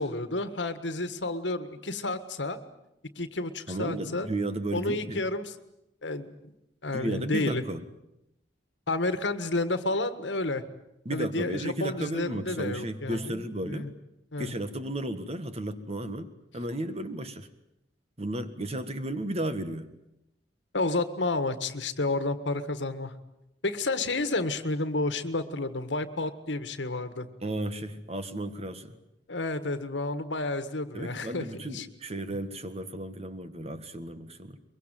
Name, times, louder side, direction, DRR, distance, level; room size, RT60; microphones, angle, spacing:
voice 1, 0.0-2.6 3.1-4.3 4.7-5.5 6.0-6.5 6.8-7.6 8.9-10.6 11.1-13.9 14.3-14.5 20.7-23.1 23.6-27.3 29.3-31.4 31.7-31.9, left 2 dB, 75° left, 11 dB, 1.7 m, -30 dB
voice 2, 3.7-5.2 6.9-7.8 11.0-13.9 14.4-17.5 18.2-19.9 27.4-29.0 30.9-34.6, right 1 dB, 35° right, 10 dB, 1.8 m, -34 dB
23.0 x 22.5 x 9.2 m, 0.86 s
head